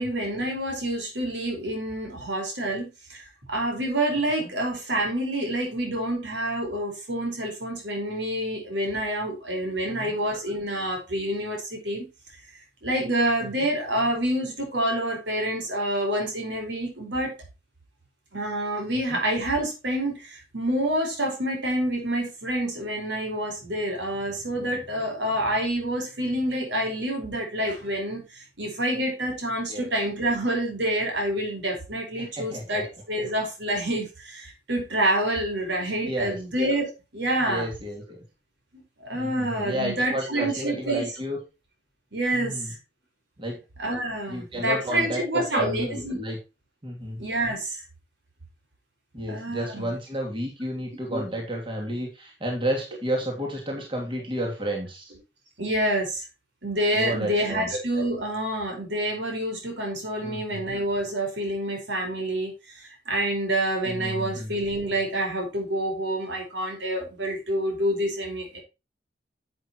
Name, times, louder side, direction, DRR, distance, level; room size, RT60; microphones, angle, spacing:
voice 1, 0.0-12.1 12.8-17.3 18.3-37.7 39.0-41.1 42.1-42.8 43.8-46.2 47.2-47.8 49.3-49.9 51.1-51.2 55.6-56.2 56.6-68.6, right 1 dB, 70° right, 2 dB, 4.8 m, -27 dB
voice 2, 32.2-32.8 35.8-36.3 37.4-38.2 39.1-41.4 42.3-42.7 43.4-43.6 44.3-46.4 46.8-47.2 49.1-55.0 56.9-57.7 60.2-60.6 63.8-64.5, equal, 30° right, 0 dB, 2.8 m, -32 dB
11.0 x 8.1 x 3.1 m, 0.27 s
head